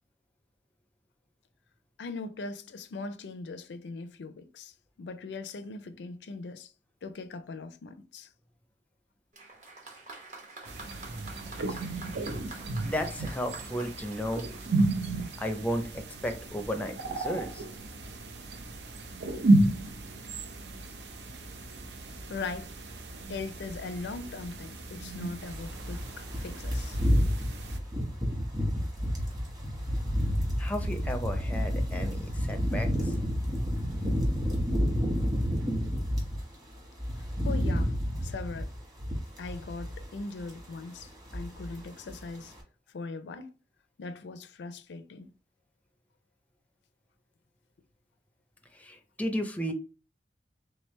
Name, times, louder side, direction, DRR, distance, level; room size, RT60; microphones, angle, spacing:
voice 1, 2.0-6.7 7.0-8.3 22.3-22.7 23.3-27.0 37.4-38.0 38.2-38.7 39.4-42.5 42.9-43.5 44.0-45.3, left 3 dB, 80° left, 0.4 m, -40 dB
Applause, 9.3-15.8 16.7-16.8, right 3 dB, 45° right, 1.1 m, -48 dB
sound 1, 10.7-27.8, right 2 dB, 75° right, 0.6 m, -32 dB
voice 2, 12.8-14.4 15.4-17.6 30.6-33.1 48.7-49.7, equal, 10° left, 0.5 m, -34 dB
sound 2, 25.5-36.4 36.8-40.2 40.4-40.7 41.0-41.8 42.1-42.3, equal, 20° right, 1.2 m, -30 dB
3.4 x 3.2 x 3.1 m
head